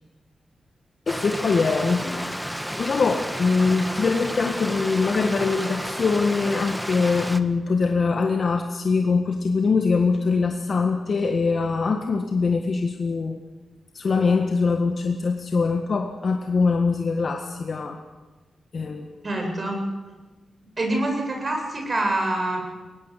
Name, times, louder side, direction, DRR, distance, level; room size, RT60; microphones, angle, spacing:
voice 1, 1.1-2.2 2.8-13.4 13.9-18.0 18.7-19.2, left 4 dB, 60° left, 4 dB, 1.6 m, -23 dB
Stream, 1.1-7.4, equal, ahead, 1.6 m, -31 dB
voice 2, 19.2-19.9 20.8-22.6, right 1 dB, 45° right, 2 dB, 7.7 m, -25 dB
22.5 x 18.5 x 8.4 m, 1.3 s
cardioid pair, 50°, 0 cm